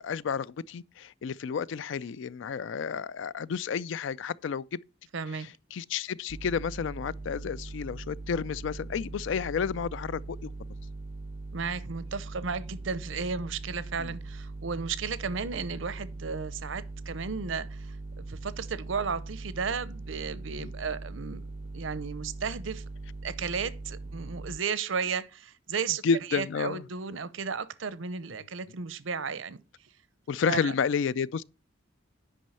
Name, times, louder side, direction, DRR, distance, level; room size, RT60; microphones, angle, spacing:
voice 1, 0.0-4.8 5.3-10.5 14.0-14.1 20.6-20.7 26.0-26.8 30.3-31.4, left 6 dB, 70° left, 0.4 m, -31 dB
voice 2, 5.1-5.5 11.5-18.0 18.3-21.4 21.7-22.9 23.2-26.0 26.3-29.6 30.5-30.7, right 5 dB, 75° right, 0.7 m, -34 dB
sound 1, 6.3-24.6, right 2 dB, 30° right, 0.5 m, -41 dB
9.1 x 5.4 x 5.5 m
head